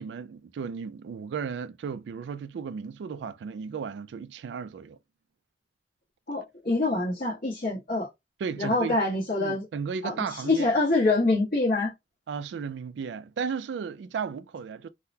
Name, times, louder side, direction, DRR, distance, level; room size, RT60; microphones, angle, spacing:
voice 1, 0.0-5.0 8.4-9.0 9.4-10.7 12.3-14.9, right 6 dB, 80° right, 0.3 m, -34 dB
voice 2, 6.3-8.1 8.6-9.6 10.0-11.9, left 2 dB, 55° left, 1.2 m, -25 dB
3.8 x 2.1 x 2.7 m
head